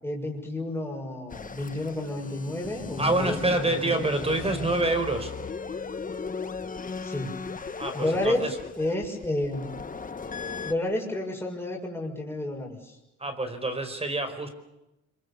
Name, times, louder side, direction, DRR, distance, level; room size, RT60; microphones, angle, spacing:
voice 1, 0.0-4.8 7.0-7.3 7.9-8.5 8.7-9.7 10.6-13.0, left 1 dB, 10° left, -1 dB, 6.6 m, -31 dB
sound 1, 1.3-10.7, left 5 dB, 25° left, 1.4 m, -37 dB
voice 2, 3.0-5.3 7.8-8.6 13.2-14.5, right 2 dB, 20° right, 8 dB, 4.8 m, -27 dB
25.5 x 24.0 x 7.1 m, 0.91 s
cardioid pair, 90°, 30 cm